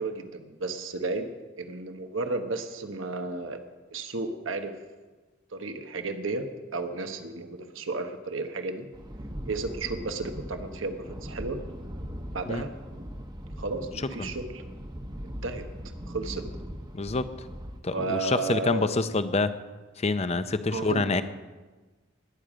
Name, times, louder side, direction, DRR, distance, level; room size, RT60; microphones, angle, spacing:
voice 1, 0.0-3.6 3.9-4.7 5.5-8.9 9.5-11.6 12.3-12.7 13.6-14.6 15.2-15.7 16.1-16.4 17.9-18.9 20.7-21.2, right 3 dB, 85° right, 7 dB, 1.2 m, -33 dB
sound 1, 8.9-17.8, equal, 20° right, 0.9 m, -40 dB
voice 2, 16.9-17.3 17.8-19.5 20.0-21.2, left 3 dB, 35° left, 11 dB, 0.7 m, -26 dB
20.0 x 9.0 x 5.1 m, 1.3 s
head